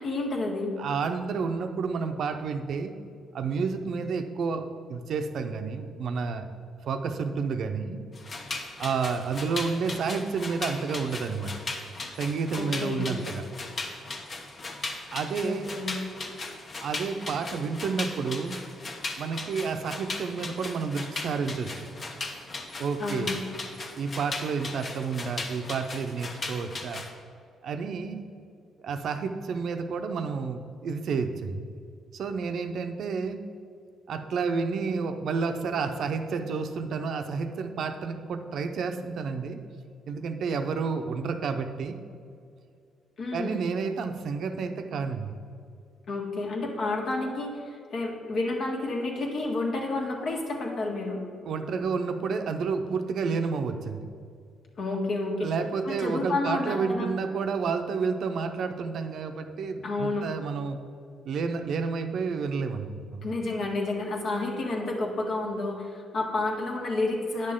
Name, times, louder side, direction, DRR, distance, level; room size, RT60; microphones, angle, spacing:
voice 1, 0.0-0.7 12.5-13.1 15.4-16.0 23.0-23.3 43.2-43.6 46.1-51.2 54.8-55.5 55.8-57.1 59.8-60.3 63.2-67.5, left 2 dB, 60° left, -1 dB, 1.6 m, -30 dB
voice 2, 0.8-2.9 3.3-6.5 6.9-8.0 8.8-11.5 12.2-13.4 15.1-15.7 16.8-18.6 19.2-21.9 22.8-23.3 24.0-27.0 27.6-28.2 28.8-31.6 32.1-33.4 34.1-39.6 40.1-42.0 43.3-45.3 51.4-54.1 55.4-60.8 61.2-63.3, right 5 dB, 65° right, 7 dB, 0.6 m, -30 dB
sound 1, 8.1-27.1, left 3 dB, 45° left, 1.0 m, -37 dB
9.6 x 6.6 x 3.7 m, 2.3 s
cardioid pair, 90°, 0 cm